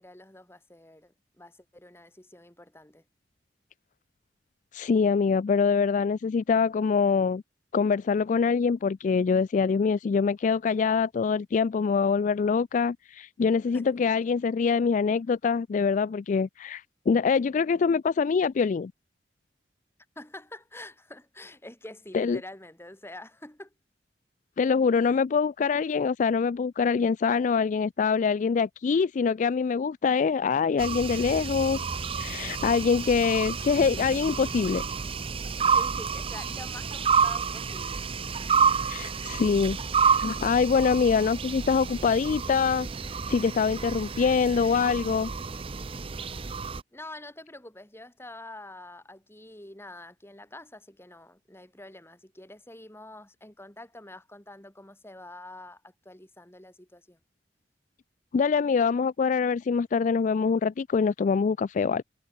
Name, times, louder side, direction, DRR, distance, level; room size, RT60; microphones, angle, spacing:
voice 1, 0.0-3.0 13.7-13.9 20.2-23.7 25.0-25.2 35.6-38.1 46.9-57.2, left 1 dB, 15° left, 4.2 m, -46 dB
voice 2, 4.7-7.4 7.7-18.9 22.1-22.4 24.6-31.8 32.2-34.8 38.9-42.9 43.3-45.3 58.3-62.0, left 5 dB, 45° left, 0.3 m, -24 dB
sound 1, 30.8-46.8, right 6 dB, 30° right, 0.6 m, -29 dB
head